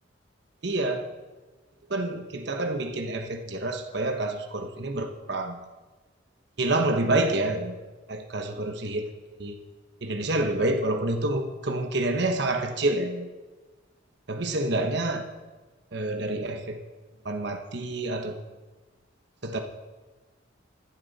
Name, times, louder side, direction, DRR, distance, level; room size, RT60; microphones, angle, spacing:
voice 1, 0.6-1.1 1.9-5.6 6.6-7.8 8.1-9.0 9.4-9.6 10.0-13.3 14.3-15.2 15.9-16.8 17.2-18.4 19.4-19.6, right 2 dB, 60° right, 4 dB, 1.2 m, -28 dB
16.0 x 11.5 x 4.2 m, 1.3 s
head